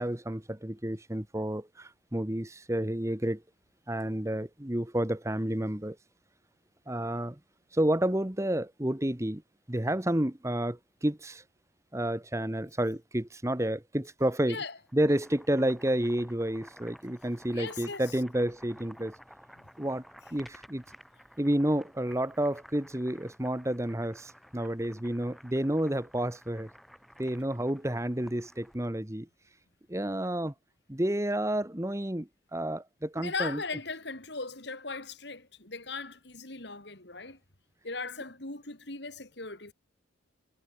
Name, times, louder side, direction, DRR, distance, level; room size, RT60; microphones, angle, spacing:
voice 1, 0.0-3.4 3.9-6.0 6.9-7.4 7.7-9.4 9.7-11.4 11.9-14.6 14.9-19.1 19.8-20.0 20.3-20.8 21.4-26.7 27.2-29.3 29.9-30.5 30.9-33.6, right 1 dB, 15° right, 1.1 m, -30 dB
Boiling, 14.8-28.9, equal, ahead, 3.0 m, -54 dB
voice 2, 17.5-18.2 33.1-37.4 37.8-39.7, left 4 dB, 60° left, 3.6 m, -38 dB
head